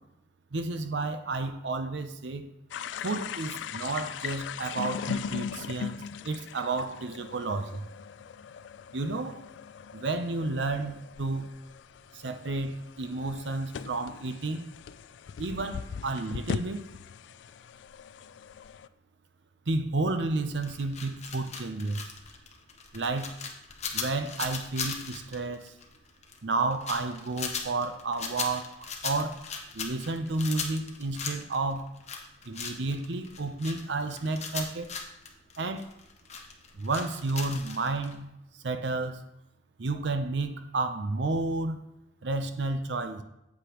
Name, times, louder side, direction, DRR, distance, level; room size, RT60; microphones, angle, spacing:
voice 1, 0.5-2.5 3.0-7.9 8.9-9.4 9.9-11.5 12.1-14.6 15.4-16.9 19.7-22.1 22.9-23.4 23.9-25.7 26.4-28.8 29.0-29.4 29.7-31.9 32.5-34.9 35.6-35.9 36.7-38.3 38.6-39.2 39.8-41.8 42.2-43.2, right 3 dB, 80° right, 9 dB, 0.7 m, -31 dB
sound 1, 2.7-18.9, left 7 dB, 80° left, 0.3 m, -40 dB
sound 2, 20.6-38.1, left 6 dB, 40° left, 1.0 m, -38 dB
8.3 x 8.1 x 3.0 m, 0.88 s
head